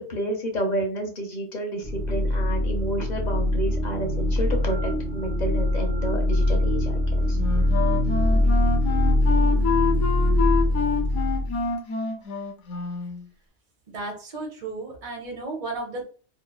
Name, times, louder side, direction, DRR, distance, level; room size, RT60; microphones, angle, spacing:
voice 1, 0.0-6.9 7.3-7.4, right 1 dB, 40° left, 2 dB, 0.7 m, -30 dB
sound 1, 1.8-11.7, left 1 dB, 10° left, 0.6 m, -23 dB
Wind instrument woodwind instrument, 7.3-13.2, left 5 dB, 85° left, 1.1 m, -27 dB
voice 2, 13.9-16.0, right 2 dB, 40° right, 0 dB, 0.6 m, -34 dB
3.1 x 2.1 x 2.3 m, 0.40 s
omnidirectional pair, 1.4 m